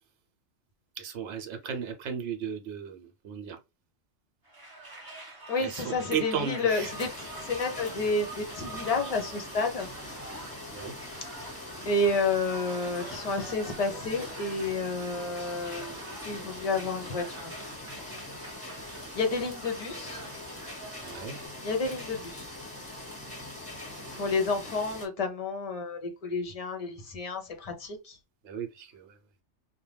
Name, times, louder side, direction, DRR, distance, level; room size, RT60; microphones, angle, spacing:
voice 1, 1.0-3.6 5.6-6.9 10.7-10.9 11.7-11.8 19.0-19.1 21.0-21.4 23.9-24.0 28.4-29.2, right 7 dB, 75° right, 1.0 m, -35 dB
sound 1, 4.4-21.5, right 2 dB, 20° right, 0.7 m, -46 dB
voice 2, 5.5-7.1 7.5-9.9 11.4-11.5 11.9-17.5 19.1-20.2 21.6-22.5 24.1-28.2, left 3 dB, 40° left, 0.6 m, -30 dB
sound 2, 6.7-25.1, left 1 dB, 5° left, 1.1 m, -42 dB
2.5 x 2.2 x 3.2 m
omnidirectional pair, 1.2 m